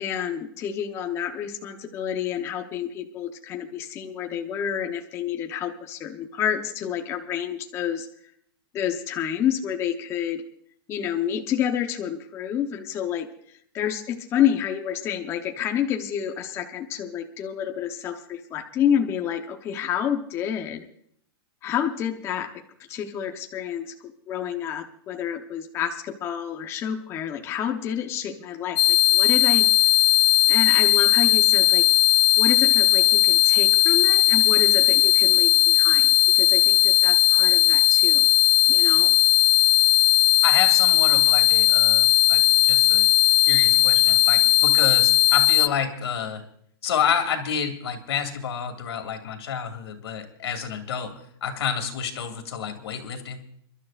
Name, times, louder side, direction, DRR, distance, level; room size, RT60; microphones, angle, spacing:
voice 1, 0.0-8.1 8.7-10.4 10.9-20.8 21.6-22.6 22.9-29.7 30.5-31.9 32.4-36.1 36.3-38.2 38.7-39.1, left 9 dB, 20° left, 4 dB, 0.9 m, -29 dB
sound 1, 28.8-45.7, left 14 dB, 70° left, 0.4 m, -18 dB
voice 2, 40.4-43.1 43.5-46.4 46.8-53.4, left 7 dB, 85° left, 5 dB, 2.5 m, -29 dB
29.5 x 12.5 x 2.5 m, 0.65 s
supercardioid pair, 160°, 13 cm